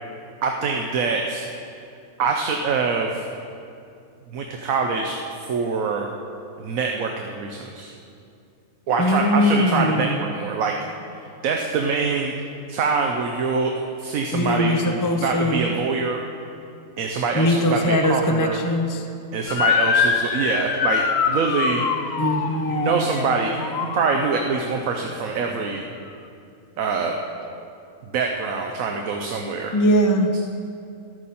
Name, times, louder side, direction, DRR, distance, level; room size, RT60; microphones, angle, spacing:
voice 1, 0.4-1.5 2.2-3.3 4.3-5.2 5.5-6.1 6.6-7.9 8.9-10.8 11.1-12.3 12.7-13.7 14.0-16.2 17.0-18.6 19.3-21.8 22.7-25.8 26.8-27.1 28.1-29.7 30.3-30.4, right 4 dB, 75° right, 2 dB, 1.2 m, -24 dB
voice 2, 9.0-10.2 14.3-15.7 17.3-19.0 22.2-23.1 29.7-30.3, equal, 20° left, 3 dB, 0.6 m, -21 dB
Motor vehicle (road) / Siren, 19.5-24.7, left 6 dB, 55° left, 0.9 m, -24 dB
14.0 x 12.0 x 4.3 m, 2.5 s
omnidirectional pair, 1.5 m